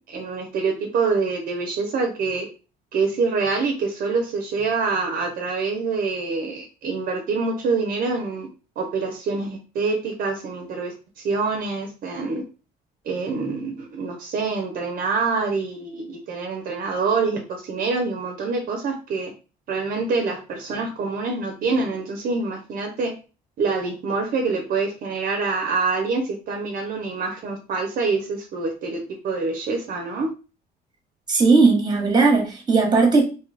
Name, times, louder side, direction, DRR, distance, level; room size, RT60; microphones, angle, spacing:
voice 1, 0.0-2.5 2.9-8.5 8.8-12.4 13.0-19.3 19.7-23.1 23.6-30.3, right 4 dB, 60° right, 0.7 m, -26 dB
voice 2, 31.3-33.2, right 4 dB, 25° right, 1.2 m, -17 dB
2.8 x 2.3 x 3.2 m
cardioid pair, 110°, 17 cm